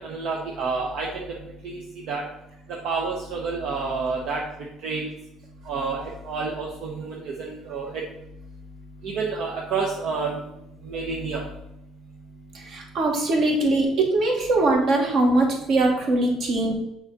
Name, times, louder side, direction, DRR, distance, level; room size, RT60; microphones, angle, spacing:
voice 1, 0.0-1.2 1.6-1.8 2.1-2.2 2.8-4.4 4.8-5.1 5.7-6.0 6.3-7.9 9.0-10.4 10.9-11.4, right 4 dB, 70° right, -1 dB, 1.1 m, -29 dB
voice 2, 12.6-16.8, right 2 dB, 55° right, 1 dB, 1.8 m, -21 dB
6.3 x 4.9 x 4.1 m, 0.84 s
cardioid pair, 120°, 0 cm